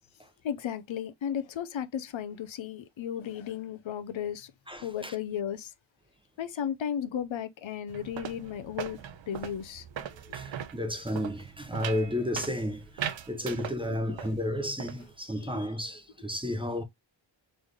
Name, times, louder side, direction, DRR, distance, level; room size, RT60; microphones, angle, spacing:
voice 1, 0.4-4.5 4.8-5.7 6.4-9.0 9.3-9.9 13.3-14.6 15.3-15.7, left 9 dB, 90° left, 0.8 m, -35 dB
voice 2, 4.7-5.1 10.3-16.8, left 1 dB, 10° right, 0.6 m, -32 dB
sound 1, 7.9-14.4 14.6-15.1, right 9 dB, 75° right, 0.7 m, -40 dB
3.9 x 3.3 x 3.2 m
wide cardioid pair, 175°, 46 cm